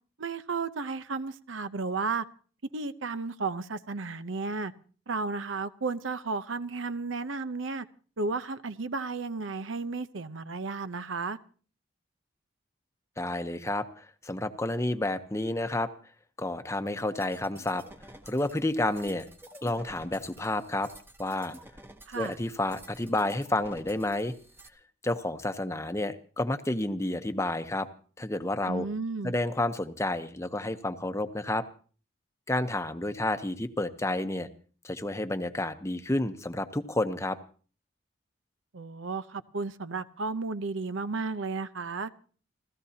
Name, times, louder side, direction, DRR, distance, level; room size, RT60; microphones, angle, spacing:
voice 1, 0.2-2.3 2.7-4.7 5.1-7.9 8.2-11.4 22.1-22.4 28.7-29.3 38.7-42.1, right 4 dB, 85° right, 0.8 m, -33 dB
voice 2, 13.2-15.9 16.4-17.8 18.3-19.2 19.6-20.9 21.2-21.6 22.1-24.3 25.0-27.9 28.2-28.9 29.2-31.6 32.5-34.5 34.8-37.4, left 1 dB, 15° left, 0.8 m, -30 dB
sound 1, 17.2-24.7, right 1 dB, 10° right, 1.0 m, -51 dB
30.0 x 14.5 x 2.8 m
head